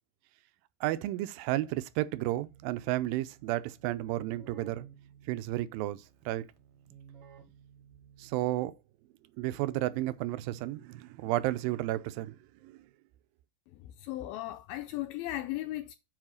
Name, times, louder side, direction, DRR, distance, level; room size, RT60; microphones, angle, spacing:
voice 1, 0.8-4.9 5.3-6.5 8.2-8.7 9.4-12.4 12.6-12.8, right 16 dB, 80° right, 2.2 m, -32 dB
Keyboard (musical), 2.0-8.9, right 8 dB, 60° right, 1.6 m, -57 dB
voice 2, 13.7-15.9, left 15 dB, 80° left, 2.4 m, -37 dB
7.4 x 4.2 x 6.2 m
omnidirectional pair, 4.4 m